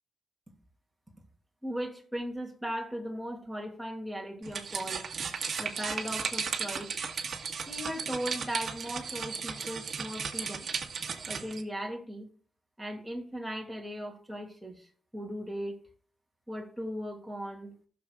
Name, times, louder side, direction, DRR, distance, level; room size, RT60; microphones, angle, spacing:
voice 1, 1.6-5.0 5.6-6.9 7.7-10.7 11.3-12.3 12.8-14.9 15.1-15.8 16.5-17.8, equal, 5° right, 0 dB, 2.4 m, -37 dB
sound 1, 4.4-11.6, right 6 dB, 60° right, 1.2 m, -35 dB
16.0 x 6.7 x 2.4 m, 0.42 s
wide cardioid pair, 135°, 0 cm